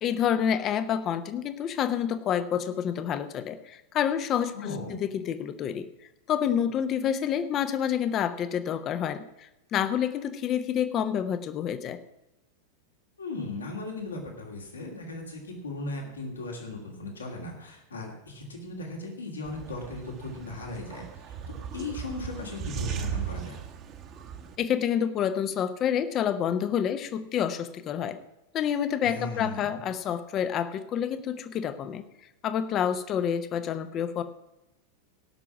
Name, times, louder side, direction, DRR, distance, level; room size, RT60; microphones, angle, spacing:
voice 1, 0.0-5.9 6.3-9.2 9.7-12.0 24.6-28.2 28.5-32.1 32.4-34.2, left 9 dB, 30° left, 11 dB, 0.8 m, -28 dB
voice 2, 4.5-5.0 13.2-23.6 29.0-29.7, left 2 dB, 75° left, 1 dB, 2.6 m, -37 dB
sound 1, 19.4-24.6, right 8 dB, 35° right, 1.3 m, -37 dB
18.0 x 6.1 x 6.1 m, 0.94 s
figure-of-eight pair, 90°, 0 cm